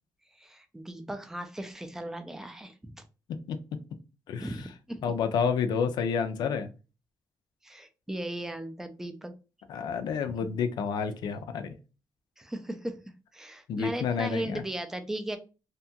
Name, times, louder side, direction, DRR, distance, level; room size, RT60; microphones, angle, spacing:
voice 1, 0.4-2.9 4.4-5.0 7.6-9.3 10.3-10.5 12.4-12.9 13.3-15.4, right 1 dB, 5° right, 8 dB, 0.3 m, -37 dB
voice 2, 4.3-4.7 5.0-6.7 9.7-11.8 13.7-14.6, left 6 dB, 80° left, 9 dB, 0.4 m, -30 dB
2.7 x 2.2 x 2.7 m, 0.32 s
wide cardioid pair, 175°, 7 cm